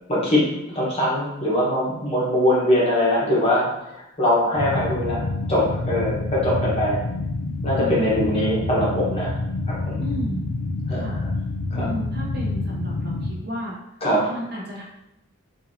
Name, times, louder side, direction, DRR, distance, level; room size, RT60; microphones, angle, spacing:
voice 1, 0.1-7.0 7.6-9.3 9.7-10.0 10.9-11.1 11.7-11.9 14.0-14.3, left 1 dB, 25° left, -6 dB, 1.0 m, -22 dB
sound 1, 4.6-13.4, left 2 dB, 60° left, 0.5 m, -27 dB
voice 2, 7.8-8.2 10.0-10.4 10.9-11.2 11.7-14.0 14.3-14.8, equal, 45° right, -4 dB, 1.0 m, -32 dB
4.5 x 2.9 x 2.6 m, 0.85 s
head